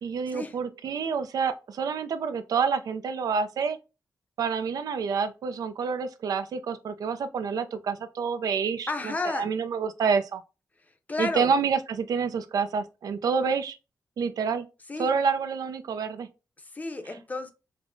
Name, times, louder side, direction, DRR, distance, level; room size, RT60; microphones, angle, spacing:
voice 1, 0.0-3.8 4.4-10.4 11.2-13.8 14.2-14.7 15.0-16.3, right 5 dB, 80° right, 0.4 m, -28 dB
voice 2, 8.9-9.5 11.1-11.5 14.9-15.1 16.7-17.5, left 2 dB, 25° left, 0.6 m, -31 dB
5.2 x 2.1 x 2.5 m
wide cardioid pair, 110°, 6 cm